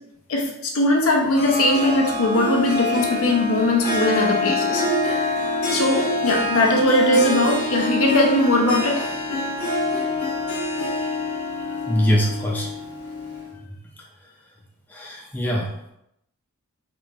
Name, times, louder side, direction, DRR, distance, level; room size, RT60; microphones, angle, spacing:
voice 1, 0.3-5.3 5.7-9.1, left 1 dB, 65° left, 0 dB, 0.7 m, -20 dB
Harp, 1.3-13.5, left 2 dB, 90° left, 1.2 m, -26 dB
voice 2, 11.9-12.7 13.5-14.3 14.9-15.9, equal, 10° left, -2 dB, 0.3 m, -24 dB
3.7 x 3.0 x 2.4 m, 0.78 s
head